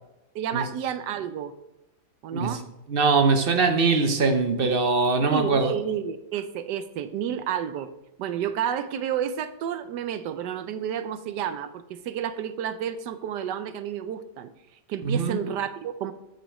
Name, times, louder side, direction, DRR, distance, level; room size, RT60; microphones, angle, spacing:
voice 1, 0.3-1.5 2.2-2.6 5.3-7.9 8.2-14.5 14.9-16.1, right 9 dB, 85° right, 1.2 m, -30 dB
voice 2, 2.9-5.7 15.0-15.4, right 4 dB, 50° right, 0.7 m, -22 dB
9.0 x 5.1 x 4.8 m
omnidirectional pair, 1.8 m